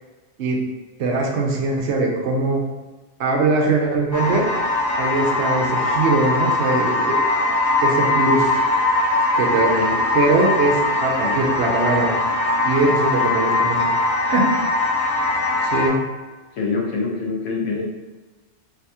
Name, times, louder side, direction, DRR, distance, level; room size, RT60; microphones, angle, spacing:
voice 1, 1.0-2.6 3.2-4.5 5.0-7.2 7.8-8.6 9.4-9.7 10.1-12.2 12.6-13.9 14.3-14.5 15.6-16.0, right 3 dB, 70° right, 0 dB, 0.9 m, -21 dB
sound 1, 4.1-15.9, left 2 dB, 45° left, 0.9 m, -21 dB
voice 2, 9.7-10.0 11.2-11.4 16.6-17.9, left 4 dB, 85° left, -1 dB, 1.1 m, -25 dB
3.4 x 2.7 x 2.7 m, 1.2 s
omnidirectional pair, 1.2 m